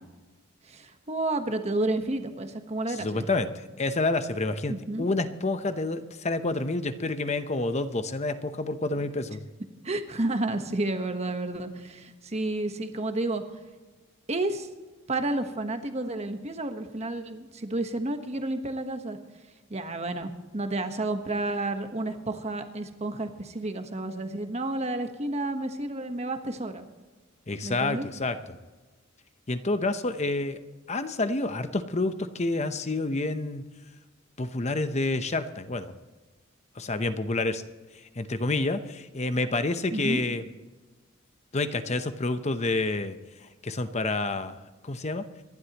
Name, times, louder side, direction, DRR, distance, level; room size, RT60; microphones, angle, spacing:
voice 1, 0.7-3.2 4.7-5.1 9.8-13.4 14.3-14.7 15.1-19.2 19.7-26.8 27.6-28.0 39.9-40.2, right 2 dB, 30° right, 7 dB, 1.2 m, -31 dB
voice 2, 2.9-9.4 27.5-28.4 29.5-30.6 30.9-33.6 34.4-35.9 36.8-37.6 38.2-40.4 41.5-43.2 43.6-45.3, left 2 dB, 30° left, 10 dB, 0.8 m, -28 dB
26.0 x 11.5 x 3.0 m, 1.3 s
head